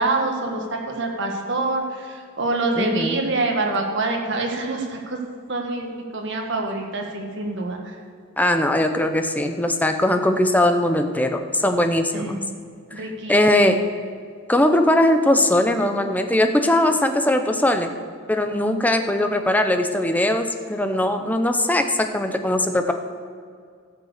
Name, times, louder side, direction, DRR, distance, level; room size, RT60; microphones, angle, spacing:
voice 1, 0.0-1.8 2.4-5.2 5.5-5.9 6.1-7.8 12.1-12.4 12.9-13.8, right 2 dB, 60° right, 2 dB, 1.8 m, -25 dB
voice 2, 2.7-3.2 8.4-12.4 13.0-13.1 13.3-13.8 14.5-17.9 18.3-22.9, left 1 dB, 10° left, 6 dB, 0.7 m, -20 dB
14.0 x 6.8 x 6.7 m, 2.1 s
head